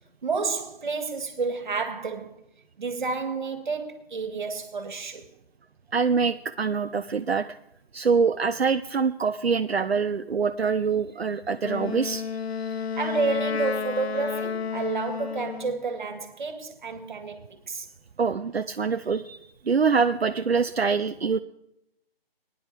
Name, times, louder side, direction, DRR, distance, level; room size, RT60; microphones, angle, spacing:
voice 1, 0.2-2.4 2.8-5.2 12.7-17.9, right 4 dB, 50° right, 1.9 m, -30 dB
voice 2, 5.9-7.5 7.9-12.2 18.2-19.4 19.7-21.4, right 5 dB, 80° right, 0.6 m, -24 dB
Wind instrument woodwind instrument, 11.6-15.8, left 6 dB, 90° left, 0.5 m, -31 dB
20.5 x 10.0 x 3.4 m
figure-of-eight pair, 145°, 31 cm